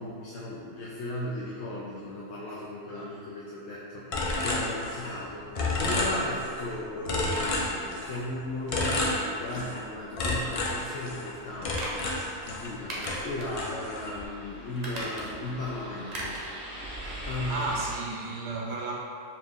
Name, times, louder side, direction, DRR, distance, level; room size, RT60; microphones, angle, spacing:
voice 1, 0.0-16.4 17.3-17.6, left 1 dB, 80° left, -7 dB, 0.9 m, -36 dB
sound 1, 4.1-5.3 5.5-6.7 7.0-8.2 8.7-9.8 10.2-12.8 13.0-14.2, left 2 dB, 60° left, 0.3 m, -30 dB
sound 2, 8.0-18.0, right 1 dB, 40° left, 1.2 m, -45 dB
sound 3, 11.7-12.1 12.9-13.5 13.9-14.0 14.7-15.5 16.1-16.5 16.8-16.9, right 1 dB, 40° right, 0.7 m, -37 dB
voice 2, 17.2-19.0, right 2 dB, 70° right, -2 dB, 0.8 m, -33 dB
4.2 x 2.4 x 3.4 m, 2.3 s
omnidirectional pair, 1.2 m